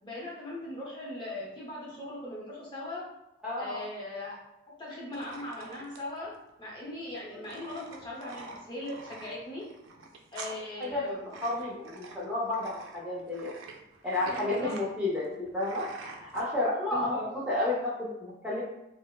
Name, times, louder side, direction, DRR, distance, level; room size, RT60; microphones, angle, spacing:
voice 1, 0.0-3.0 3.6-4.4 4.8-6.3 6.6-9.6 10.3-11.3 14.3-14.7 16.9-17.2, left 1 dB, 25° left, -5 dB, 0.7 m, -39 dB
voice 2, 3.4-3.9 7.3-7.5 10.8-11.1 11.4-13.5 14.0-15.9 16.2-18.6, left 2 dB, 5° right, -8 dB, 0.5 m, -31 dB
sound 1, 5.1-16.4, right 3 dB, 85° right, 0.5 m, -47 dB
4.2 x 2.0 x 2.3 m, 0.87 s
head